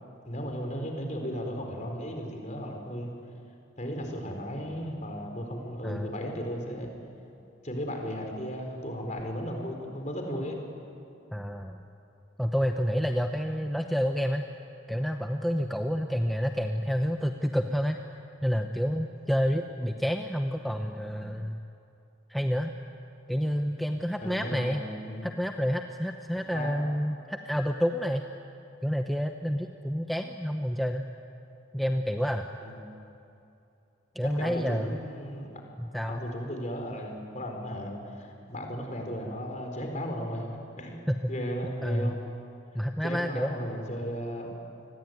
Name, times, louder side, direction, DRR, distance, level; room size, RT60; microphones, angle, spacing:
voice 1, 0.2-3.1 3.8-6.9 7.6-10.6 24.2-25.3 26.5-26.7 32.6-32.8 34.2-35.5 36.0-40.5 40.8-42.2 43.0-44.6, equal, 40° left, 3 dB, 4.3 m, -35 dB
voice 2, 5.8-6.1 11.3-11.8 12.4-14.4 14.9-18.0 18.4-21.6 22.3-22.7 23.3-24.8 25.2-28.2 28.8-31.1 31.7-32.5 34.1-35.0 35.8-36.2 41.1-41.3 41.8-42.2 42.7-43.6, equal, ahead, 4 dB, 0.8 m, -29 dB
28.5 x 20.5 x 9.4 m, 2.7 s
head